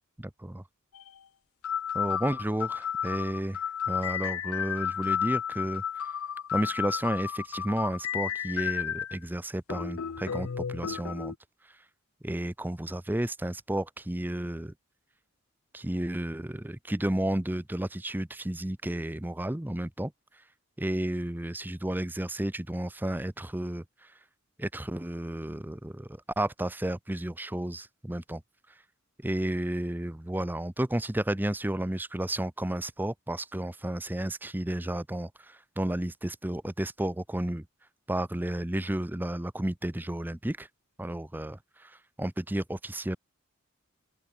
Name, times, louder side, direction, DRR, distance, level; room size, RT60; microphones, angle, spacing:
voice 1, 0.2-0.6 1.9-6.1 6.5-11.3 11.6-11.8 12.2-14.7 15.7-20.4 20.8-24.2 24.6-28.4 28.7-28.8 29.2-37.7 38.1-40.7 41.0-43.2, right 1 dB, 10° right, 0.6 m, -32 dB
sound 1, 0.9-1.1 1.6-9.2 9.7-11.3, left 8 dB, 80° left, 0.6 m, -32 dB
head